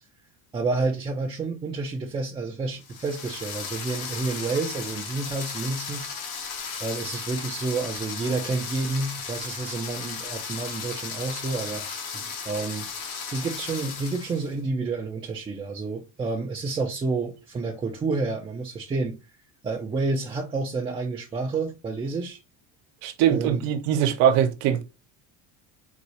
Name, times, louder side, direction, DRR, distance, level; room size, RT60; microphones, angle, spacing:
voice 1, 0.5-6.1 6.8-11.8 12.1-12.9 13.3-19.2 19.6-22.4 23.3-23.6, right 3 dB, 15° right, 0.3 m, -29 dB
sound 1, 2.8-14.5, left 6 dB, 70° left, 1.0 m, -35 dB
voice 2, 23.0-24.8, right 9 dB, 75° right, 0.7 m, -22 dB
4.0 x 2.3 x 2.8 m
cardioid pair, 120°, 35 cm